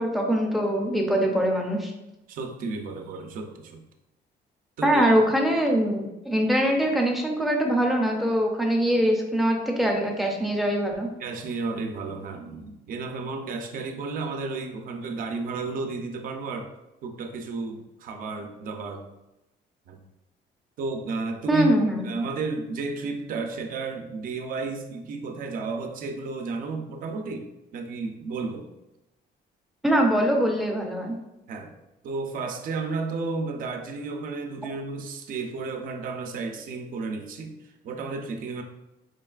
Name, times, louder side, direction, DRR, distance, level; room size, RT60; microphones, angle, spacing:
voice 1, 0.0-1.9 4.8-11.1 21.5-22.1 29.8-31.1, equal, ahead, 1 dB, 0.5 m, -23 dB
voice 2, 2.3-3.8 4.8-5.2 11.2-16.7 17.0-19.0 19.9-20.0 20.8-21.7 22.0-28.7 31.5-31.7 32.0-38.6, right 4 dB, 55° right, 5 dB, 0.5 m, -32 dB
5.1 x 3.1 x 2.3 m, 0.93 s
cardioid pair, 175°, 17 cm